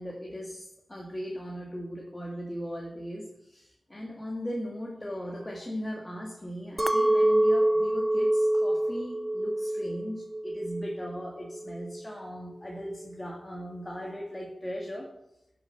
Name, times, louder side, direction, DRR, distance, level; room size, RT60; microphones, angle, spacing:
voice 1, 0.0-15.2, equal, 15° left, -1 dB, 1.9 m, -38 dB
Chink clink, 6.8-11.2 11.5-12.1, right 1 dB, 10° right, 0.6 m, -26 dB
11.5 x 6.8 x 5.9 m, 0.79 s
wide cardioid pair, 105°, 0 cm